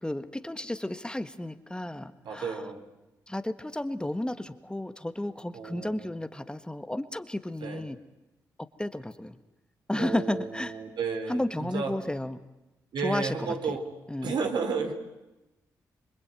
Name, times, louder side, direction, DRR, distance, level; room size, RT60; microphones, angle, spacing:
voice 1, 0.0-2.5 3.3-8.0 8.8-9.3 9.9-10.7 11.3-12.4 13.0-13.3 14.1-14.3, left 1 dB, 10° left, 10 dB, 1.7 m, -32 dB
voice 2, 2.2-2.8 5.5-6.1 7.6-7.8 10.0-12.0 12.9-13.9 14.2-14.9, right 5 dB, 75° right, 5 dB, 3.9 m, -32 dB
26.5 x 23.0 x 9.2 m, 0.99 s
supercardioid pair, 50°, 8 cm